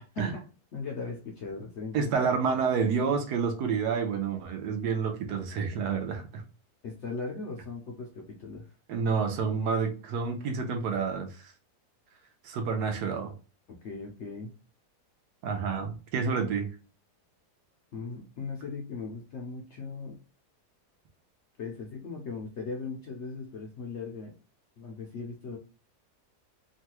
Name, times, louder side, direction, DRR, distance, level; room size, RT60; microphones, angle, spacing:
voice 1, 0.7-2.1 6.8-8.7 13.7-14.5 17.9-20.2 21.6-24.3 24.8-25.6, left 4 dB, 65° left, 1 dB, 0.7 m, -38 dB
voice 2, 1.9-6.4 8.9-11.5 12.4-13.3 15.4-16.7, right 5 dB, 80° right, 5 dB, 1.2 m, -29 dB
3.1 x 2.3 x 2.9 m, 0.35 s
omnidirectional pair, 1.7 m